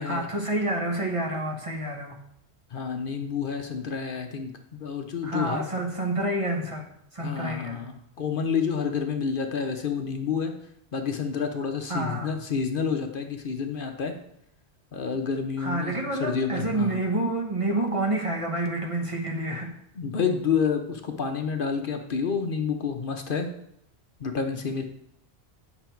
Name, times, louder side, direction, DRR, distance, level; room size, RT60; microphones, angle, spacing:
voice 1, 0.0-2.2 5.2-7.8 11.9-12.4 15.6-19.7, right 1 dB, 30° right, 0 dB, 1.2 m, -28 dB
voice 2, 2.7-5.6 7.2-10.5 10.9-14.1 14.9-17.0 20.0-23.5 24.2-24.8, left 6 dB, 55° left, 5 dB, 0.9 m, -29 dB
8.9 x 6.0 x 4.5 m, 0.75 s
omnidirectional pair, 1.1 m